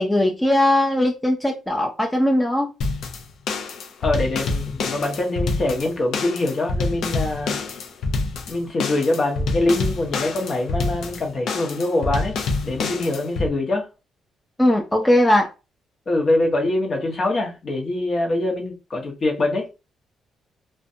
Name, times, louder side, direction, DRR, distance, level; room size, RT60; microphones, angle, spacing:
voice 1, 0.0-2.7 14.6-15.5, left 1 dB, 10° left, 0.4 m, -19 dB
sound 1, 2.8-13.5, left 3 dB, 70° left, 0.5 m, -27 dB
voice 2, 4.0-7.6 8.5-12.4 12.6-13.9 16.1-19.7, left 2 dB, 45° left, 0.8 m, -24 dB
2.5 x 2.2 x 2.6 m
cardioid pair, 90°, 0 cm